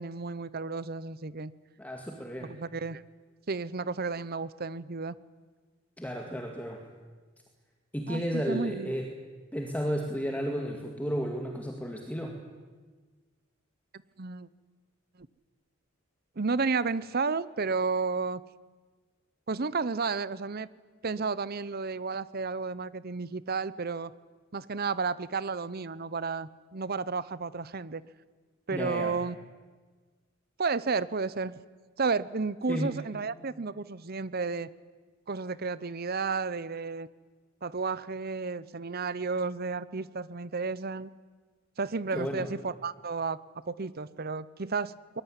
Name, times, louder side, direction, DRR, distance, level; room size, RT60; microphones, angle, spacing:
voice 1, 0.0-1.5 2.4-3.0 3.5-5.1 8.1-8.9 14.2-14.5 16.4-18.4 19.5-20.7 21.0-24.1 24.5-28.0 28.7-29.4 30.6-31.5 32.0-34.7 35.3-37.1 37.6-41.1 41.8-43.4 43.7-45.2, right 4 dB, 50° right, 17 dB, 0.9 m, -32 dB
voice 2, 1.8-2.6 6.0-6.8 7.9-9.1 9.5-12.4 28.7-29.2 32.7-32.9 42.1-42.5, equal, 10° left, 2 dB, 2.1 m, -33 dB
22.5 x 21.5 x 9.9 m, 1.4 s
head